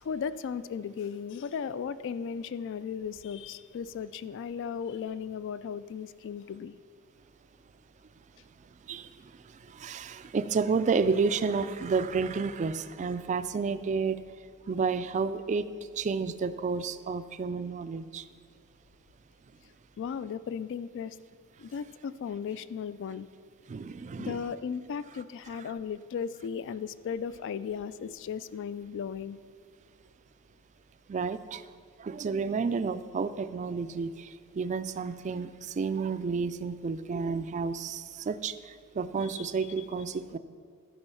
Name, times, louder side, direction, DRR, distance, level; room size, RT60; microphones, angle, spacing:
voice 1, 0.0-6.8 20.0-21.2 21.6-23.3 24.2-29.4 39.2-39.5 39.8-39.9, left 7 dB, 55° left, 16 dB, 0.3 m, -36 dB
voice 2, 9.8-14.2 14.7-15.7 16.0-18.2 23.7-24.5 31.1-31.6 32.0-34.3 34.6-35.5 35.8-38.5 39.0-40.4, right 5 dB, 35° right, 13 dB, 0.3 m, -30 dB
12.0 x 5.3 x 5.7 m, 2.2 s
head